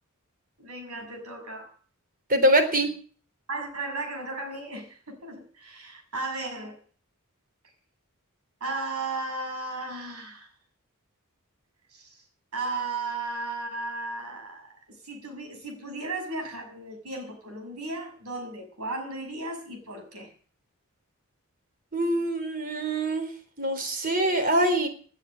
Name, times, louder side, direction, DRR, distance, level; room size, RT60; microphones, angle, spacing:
voice 1, 0.6-1.7 3.5-6.8 8.6-10.5 11.9-12.2 12.5-20.3, right 2 dB, 75° right, 6.5 m, -35 dB
voice 2, 2.3-2.9 21.9-23.3 23.6-24.9, right 1 dB, 40° right, 3.9 m, -24 dB
18.5 x 9.7 x 7.6 m
head